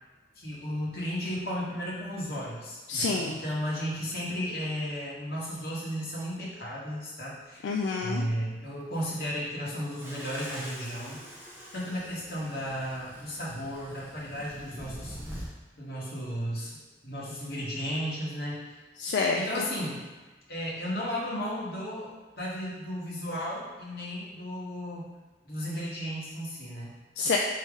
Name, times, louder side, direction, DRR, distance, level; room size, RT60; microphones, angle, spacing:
voice 1, 0.4-7.6 8.0-11.2 11.7-15.4 15.8-16.8 17.0-18.6 19.3-20.0 20.5-22.1 22.4-25.1 25.4-27.0, equal, 55° left, -5 dB, 1.1 m, -34 dB
voice 2, 2.9-3.4 7.6-8.3 19.0-19.7 27.2-27.4, left 4 dB, 80° left, 0 dB, 0.3 m, -28 dB
sound 1, 10.0-15.5, equal, 15° right, 0.7 m, -44 dB
4.6 x 2.8 x 3.6 m, 1.2 s
head